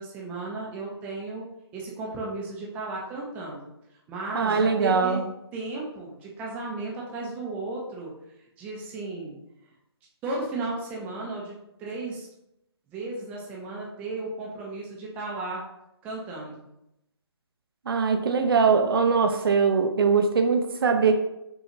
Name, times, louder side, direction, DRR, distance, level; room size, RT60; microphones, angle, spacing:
voice 1, 0.0-1.5 1.7-3.7 4.1-5.2 5.5-8.1 8.6-9.4 10.2-11.5 11.8-12.3 12.9-15.6 16.0-16.7, right 2 dB, 10° right, -3 dB, 0.6 m, -34 dB
voice 2, 4.3-5.2 17.9-21.1, right 5 dB, 55° right, 6 dB, 0.6 m, -22 dB
5.3 x 2.4 x 3.0 m, 0.86 s
hypercardioid pair, 155°, 14 cm